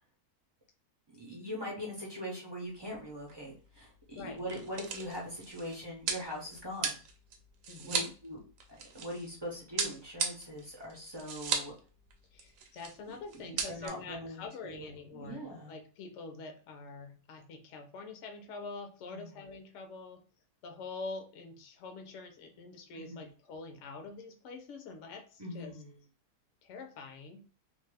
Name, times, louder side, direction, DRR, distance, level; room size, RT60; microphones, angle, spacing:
voice 1, 1.1-7.0 7.8-8.4 8.9-11.7 13.3-14.9 15.1-15.7 19.1-19.4 22.9-23.3 25.4-25.9, equal, 40° right, -2 dB, 0.3 m, -42 dB
sound 1, 2.8-3.0 3.3-3.4 4.2-9.3 9.8-11.8 12.1-12.2 12.4-13.0 13.3-13.9, right 6 dB, 65° right, 0.9 m, -36 dB
voice 2, 7.7-8.1 12.3-20.2 20.6-25.7 26.6-27.4, left 3 dB, 65° left, 6 dB, 0.8 m, -45 dB
2.7 x 2.2 x 3.3 m, 0.36 s
omnidirectional pair, 1.7 m